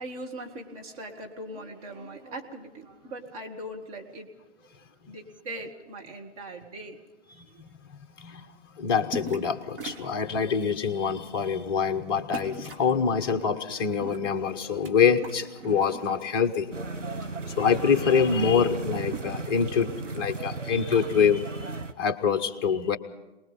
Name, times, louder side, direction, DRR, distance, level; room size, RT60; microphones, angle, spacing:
voice 1, 0.0-4.4 5.1-7.0 7.5-7.6, right 1 dB, 30° right, 1 dB, 1.9 m, -40 dB
voice 2, 8.7-16.7 17.5-19.9 20.1-23.0, left 6 dB, 20° left, 8 dB, 0.7 m, -25 dB
sound 1, 9.1-9.5 9.8-10.6 11.2-11.4 12.3-12.9 13.8-14.9 15.2-16.3 16.7-17.5 17.7-17.8 18.1-21.1, right 2 dB, 50° right, 2.5 m, -41 dB
sound 2, 16.7-21.9, right 3 dB, 90° right, 1.1 m, -35 dB
23.5 x 20.0 x 5.5 m, 1.0 s
figure-of-eight pair, 130°, 36 cm